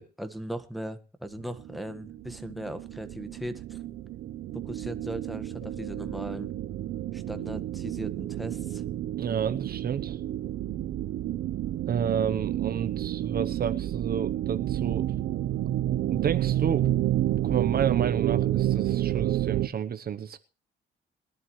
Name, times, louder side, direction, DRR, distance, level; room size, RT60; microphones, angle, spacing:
voice 1, 0.0-3.8 4.5-6.5 7.1-8.8, equal, ahead, 8 dB, 1.5 m, -38 dB
sound 1, 1.4-19.7, right 13 dB, 75° right, 0.9 m, -30 dB
sound 2, 5.6-7.9, right 2 dB, 55° left, 5.9 m, -53 dB
voice 2, 9.2-10.2 11.9-15.1 16.1-16.9 17.3-20.4, right 8 dB, 50° right, 10 dB, 0.9 m, -30 dB
22.0 x 11.0 x 3.2 m, 0.35 s
cardioid pair, 90°, 20 cm